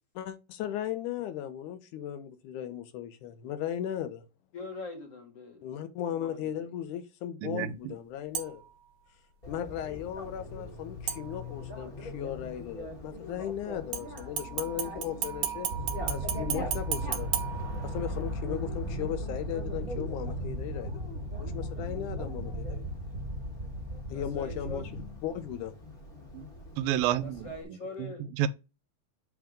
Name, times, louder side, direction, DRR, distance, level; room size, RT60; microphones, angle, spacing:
voice 1, 0.2-4.2 5.6-8.6 9.5-15.7 16.1-17.3 17.8-20.9 21.4-22.9 24.1-25.7, left 10 dB, 80° left, 1.8 m, -37 dB
voice 2, 4.5-5.6 6.1-6.6 24.1-24.8 27.2-28.3, left 2 dB, 50° left, 2.6 m, -42 dB
voice 3, 7.4-7.9 26.3-26.5 26.8-27.5 28.0-28.1 28.4-28.5, right 12 dB, 80° right, 2.4 m, -29 dB
sound 1, 8.3-8.8 11.1-11.8 13.9-18.3 18.7-18.8, right 10 dB, 65° right, 2.2 m, -35 dB
Bicycle, 9.4-27.6, left 1 dB, 20° left, 1.9 m, -43 dB
sound 2, 15.7-25.8, equal, 25° right, 1.8 m, -36 dB
8.1 x 3.6 x 5.1 m
omnidirectional pair, 4.2 m